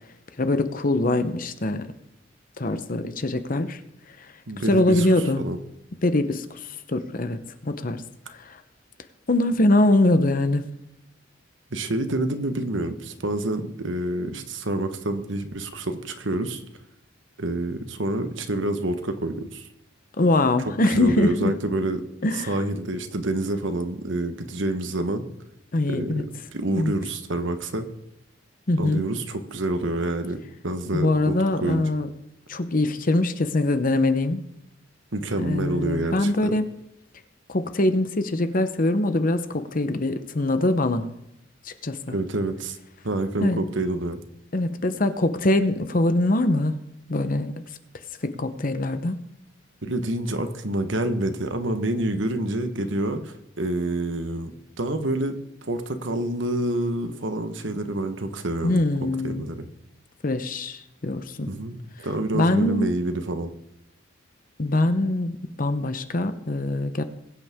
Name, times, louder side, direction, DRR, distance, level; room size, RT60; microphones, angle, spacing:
voice 1, 0.4-1.9 2.6-3.8 4.7-5.4 6.0-8.0 8.3-8.6 9.3-10.6 20.2-21.5 22.2-22.6 25.7-26.2 26.8-26.9 28.7-29.0 30.9-32.1 32.5-34.4 35.4-36.7 37.5-41.1 41.6-42.0 43.4-43.6 44.5-46.8 47.1-47.6 48.2-49.2 58.6-59.5 60.2-61.5 62.3-62.9 64.6-67.0, left 2 dB, 45° left, 0.9 m, -23 dB
voice 2, 4.5-5.1 5.4-5.6 11.7-16.6 17.4-19.7 21.0-22.0 22.3-25.2 25.9-27.9 28.8-31.9 35.1-36.5 42.1-42.8 43.0-44.2 49.8-58.8 59.2-59.7 61.5-63.5, right 1 dB, 70° right, 1.2 m, -28 dB
21.0 x 8.4 x 3.7 m
head